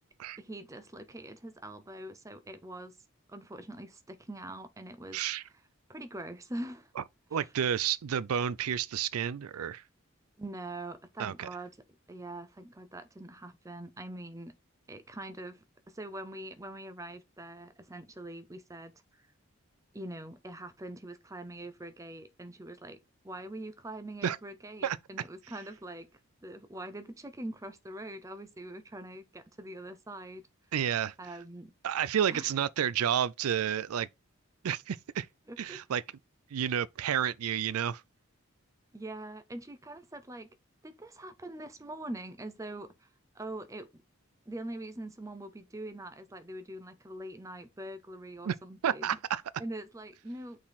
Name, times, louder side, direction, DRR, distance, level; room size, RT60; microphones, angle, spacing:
voice 1, 0.4-3.0 3.3-5.2 5.9-6.9 7.3-7.5 10.4-11.8 12.1-14.5 14.9-19.2 19.9-23.0 23.2-26.1 26.4-30.4 31.2-31.7 32.3-32.5 35.5-35.8 38.9-40.5 40.8-43.1 43.3-44.0 44.5-49.2 49.6-50.6, right 1 dB, 15° right, 0.6 m, -43 dB
voice 2, 5.1-5.4 7.0-7.1 7.3-9.8 11.2-11.5 24.2-24.4 24.8-25.0 30.7-31.1 31.8-34.1 34.6-35.3 35.6-36.0 36.5-38.0 48.4-48.6 48.8-49.4, right 9 dB, 90° right, 0.4 m, -30 dB
6.1 x 4.0 x 4.0 m
head